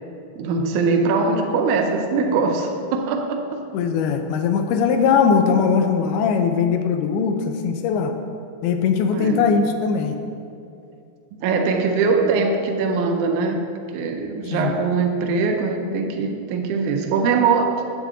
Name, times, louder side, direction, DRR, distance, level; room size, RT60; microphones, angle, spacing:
voice 1, 0.4-3.4 9.1-9.5 11.4-13.6 13.9-17.8, right 4 dB, 85° right, 4 dB, 1.7 m, -21 dB
voice 2, 3.7-8.1 8.6-10.2 14.5-14.7, left 6 dB, 90° left, 5 dB, 2.6 m, -20 dB
9.3 x 7.7 x 3.6 m, 2.5 s
omnidirectional pair, 4.4 m